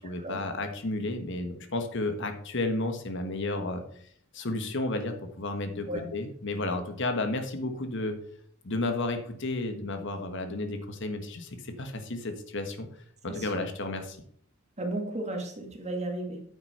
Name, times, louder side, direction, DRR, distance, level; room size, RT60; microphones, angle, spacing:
voice 1, 0.0-3.8 4.3-8.2 8.6-12.9 13.2-14.2, left 2 dB, 60° left, 6 dB, 1.3 m, -32 dB
voice 2, 13.3-13.6 14.8-16.4, right 1 dB, 35° right, 2 dB, 1.9 m, -34 dB
9.3 x 5.9 x 5.5 m, 0.62 s
head